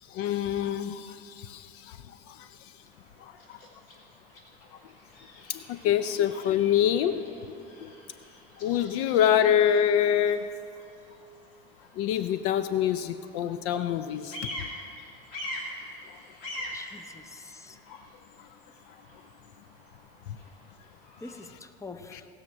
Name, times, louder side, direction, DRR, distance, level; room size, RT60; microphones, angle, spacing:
voice 1, 0.1-2.7 3.2-3.6 5.5-7.9 8.6-10.5 12.0-14.4 17.9-18.0 18.4-18.5 22.1-22.2, left 9 dB, 50° left, 12 dB, 0.5 m, -26 dB
Bird vocalization bird call bird song, 2.8-21.5, left 1 dB, 70° left, 2.9 m, -45 dB
voice 2, 16.7-17.8 21.2-22.3, left 3 dB, 10° left, 8 dB, 0.7 m, -45 dB
18.0 x 6.5 x 6.1 m, 2.6 s
hypercardioid pair, 80°, 30 cm